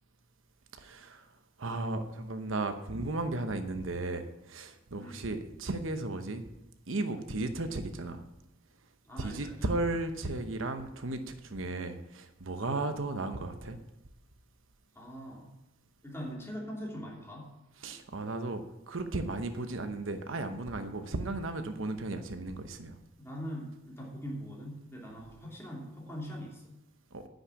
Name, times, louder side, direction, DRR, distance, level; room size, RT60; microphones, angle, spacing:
voice 1, 0.8-1.3 1.6-6.4 6.9-8.2 9.2-13.8 17.8-23.0 27.1-27.2, right 2 dB, 70° right, 8 dB, 0.9 m, -35 dB
voice 2, 9.0-9.7 12.6-12.8 14.9-15.6 16.0-17.6 23.2-26.7, equal, 10° left, -2 dB, 2.8 m, -42 dB
9.7 x 6.4 x 8.4 m, 0.95 s
head